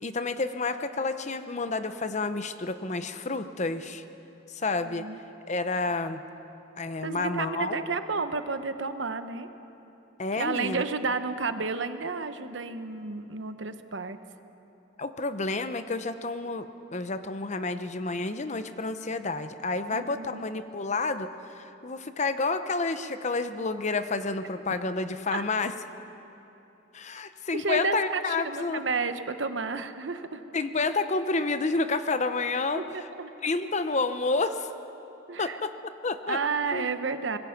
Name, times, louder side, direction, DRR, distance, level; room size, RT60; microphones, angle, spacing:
voice 1, 0.0-4.0 4.5-5.0 5.5-6.2 6.8-7.8 10.2-10.8 15.0-16.7 16.9-25.7 26.9-28.8 30.5-32.8 33.4-34.7 35.4-35.7 36.0-36.4 36.7-36.9, left 3 dB, 35° left, 10 dB, 0.8 m, -29 dB
voice 2, 4.8-5.2 7.0-9.5 10.4-14.2 19.9-20.4 25.3-25.4 27.5-30.4 32.7-33.3 35.3-35.6 36.3-37.4, right 4 dB, 70° right, 10 dB, 1.0 m, -31 dB
25.5 x 20.5 x 5.9 m, 3.0 s
head